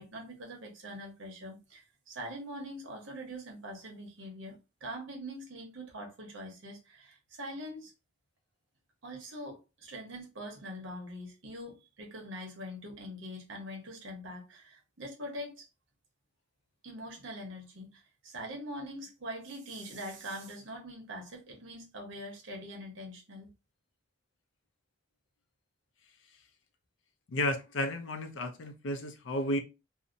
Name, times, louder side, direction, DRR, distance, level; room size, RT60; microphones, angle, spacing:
voice 1, 0.0-7.9 9.0-15.7 16.8-23.5, equal, 90° right, 1.0 m, -43 dB
voice 2, 27.3-29.6, left 1 dB, 80° left, 0.5 m, -32 dB
2.7 x 2.1 x 2.5 m
head